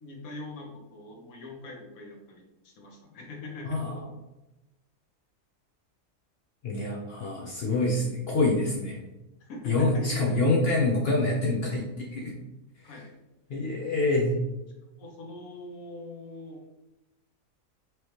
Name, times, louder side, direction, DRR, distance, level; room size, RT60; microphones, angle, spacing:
voice 1, 0.0-3.8 9.4-10.0 12.8-13.1 15.0-16.6, left 2 dB, 85° left, 0 dB, 1.4 m, -43 dB
voice 2, 3.7-4.0 6.6-9.0 9.6-12.3 13.5-14.4, left 2 dB, 55° left, -2 dB, 0.8 m, -26 dB
4.7 x 3.2 x 3.0 m, 0.98 s
omnidirectional pair, 1.4 m